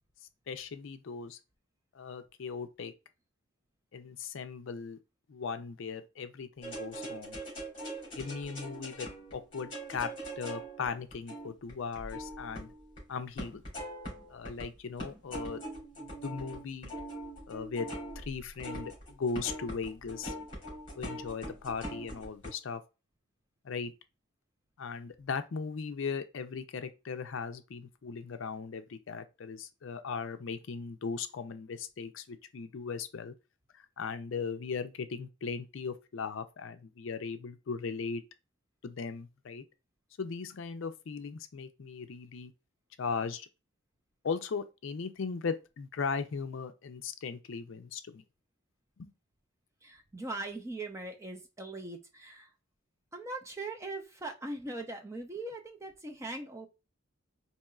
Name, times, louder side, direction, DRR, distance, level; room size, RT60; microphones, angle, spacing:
voice 1, 0.5-1.4 1.9-2.9 3.9-5.0 5.3-7.4 8.1-12.7 13.1-13.6 14.3-15.6 16.0-16.9 17.5-17.9 18.3-20.3 20.9-22.8 23.6-23.9 24.8-33.3 33.7-38.2 38.8-39.6 40.2-42.5 43.0-43.5 44.2-48.2 49.0-49.1, left 5 dB, 60° left, 0.4 m, -38 dB
sound 1, 6.6-13.0 13.4-14.7 15.0-22.5, right 1 dB, 25° left, 2.3 m, -42 dB
voice 2, 49.8-52.5 53.1-56.7, right 2 dB, 15° right, 0.5 m, -40 dB
4.3 x 2.9 x 2.3 m
head